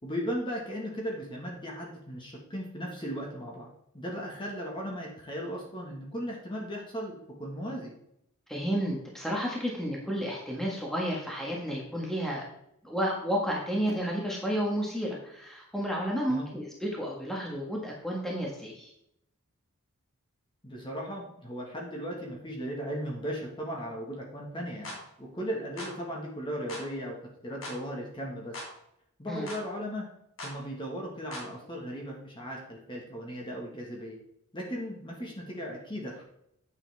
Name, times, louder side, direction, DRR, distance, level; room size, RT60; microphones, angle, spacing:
voice 1, 0.0-8.0 16.3-16.5 20.6-27.2 27.4-28.5 29.2-30.0 30.4-34.2 34.5-36.2, equal, 20° left, -1 dB, 1.7 m, -37 dB
voice 2, 8.5-12.4 12.8-18.9 29.3-29.5, equal, ahead, -3 dB, 1.6 m, -31 dB
sound 1, 24.8-25.0 25.8-26.0 26.7-26.9 27.6-27.8 28.5-28.7 29.5-29.6 30.4-30.6 31.3-31.5, left 1 dB, 65° left, 2.7 m, -40 dB
9.1 x 6.9 x 3.5 m, 0.76 s
head